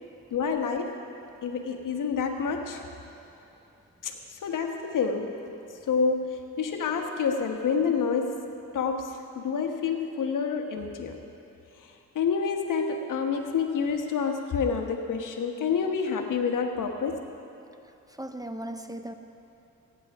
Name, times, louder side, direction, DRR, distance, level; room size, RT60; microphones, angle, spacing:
voice 1, 0.3-1.0 1.4-2.9 4.0-5.4 5.9-8.4 8.7-11.2 12.1-17.2, left 5 dB, 80° left, 3 dB, 1.3 m, -28 dB
voice 2, 18.2-19.1, right 1 dB, 10° right, 7 dB, 0.8 m, -36 dB
23.0 x 9.7 x 3.6 m, 2.8 s
cardioid pair, 70°, 31 cm